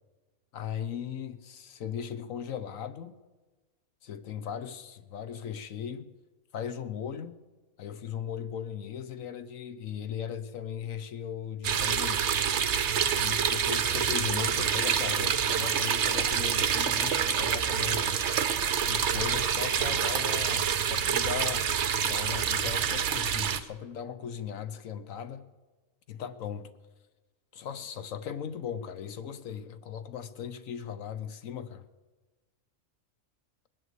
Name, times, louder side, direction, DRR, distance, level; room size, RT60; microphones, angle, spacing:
voice 1, 0.5-3.2 4.0-6.1 6.5-7.4 7.8-12.3 13.1-18.2 18.9-21.7 22.0-25.5 26.1-26.7 27.5-31.9, left 8 dB, 75° left, 1.2 m, -38 dB
sound 1, 11.6-23.6, right 8 dB, 60° right, 1.1 m, -27 dB
21.0 x 7.9 x 8.0 m
omnidirectional pair, 1.4 m